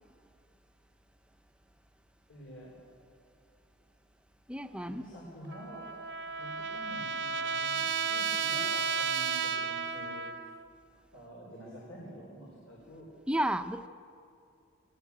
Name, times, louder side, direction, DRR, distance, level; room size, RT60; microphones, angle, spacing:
voice 1, 2.3-2.7 5.0-5.9 6.4-10.5 11.1-13.1, right 1 dB, 90° left, 4.2 m, -48 dB
voice 2, 4.5-5.1 13.3-13.9, right 1 dB, 5° right, 0.6 m, -32 dB
Trumpet, 5.5-10.6, right 5 dB, 65° right, 0.9 m, -33 dB
19.0 x 17.5 x 8.5 m
head